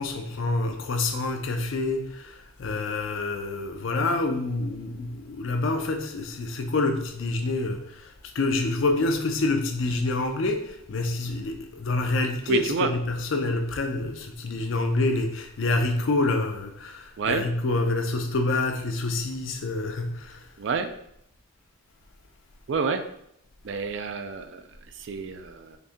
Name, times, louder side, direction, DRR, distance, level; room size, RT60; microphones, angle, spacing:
voice 1, 0.0-20.5, left 2 dB, 65° left, 5 dB, 0.5 m, -27 dB
voice 2, 12.5-12.9 17.2-17.4 20.6-20.9 22.7-23.0 23.6-24.6 24.9-25.8, right 5 dB, 55° right, 8 dB, 0.3 m, -28 dB
3.9 x 2.6 x 3.5 m, 0.76 s
head